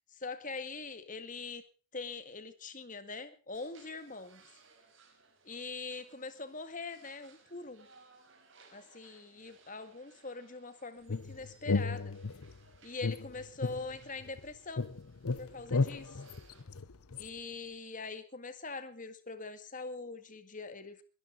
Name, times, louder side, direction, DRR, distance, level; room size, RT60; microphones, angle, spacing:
voice 1, 0.1-1.6 1.9-4.5 5.4-7.9 8.7-12.2 12.8-14.9 15.4-16.2 17.1-21.0, left 3 dB, 40° left, 11 dB, 1.9 m, -43 dB
sound 1, 3.5-16.6, right 4 dB, 60° right, 4.9 m, -63 dB
sound 2, 11.1-12.6 13.0-14.5 14.8-17.3, left 3 dB, 90° left, 0.8 m, -34 dB
22.0 x 12.0 x 4.0 m, 0.36 s
head